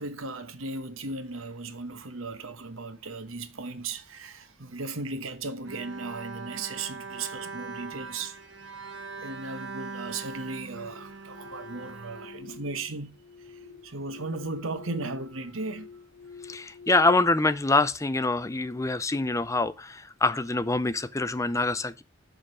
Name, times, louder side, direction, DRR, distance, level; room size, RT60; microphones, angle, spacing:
voice 1, 0.0-8.4 9.2-15.9, right 3 dB, 90° right, 1.2 m, -36 dB
Bowed string instrument, 5.6-13.0, right 4 dB, 65° right, 1.4 m, -41 dB
sound 1, 10.7-17.1, left 5 dB, 45° left, 1.4 m, -48 dB
voice 2, 16.5-22.0, left 2 dB, 15° left, 0.5 m, -25 dB
7.2 x 6.4 x 6.2 m
head